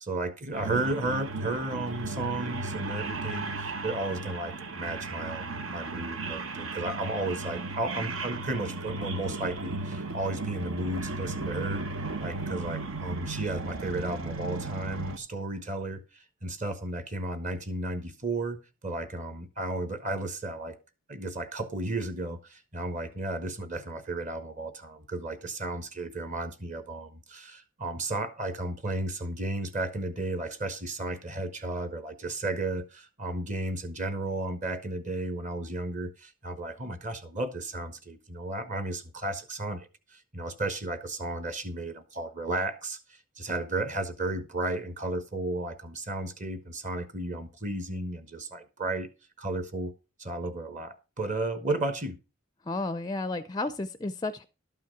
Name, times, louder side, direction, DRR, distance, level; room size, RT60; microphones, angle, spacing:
voice 1, 0.0-11.8 12.2-18.6 18.8-20.8 21.1-49.1 49.4-49.9 50.2-52.2, right 2 dB, 35° right, 1.1 m, -33 dB
sound 1, 0.5-15.2, right 3 dB, 75° right, 1.1 m, -35 dB
voice 2, 52.6-54.4, left 2 dB, 20° left, 0.4 m, -32 dB
12.0 x 5.7 x 5.8 m
head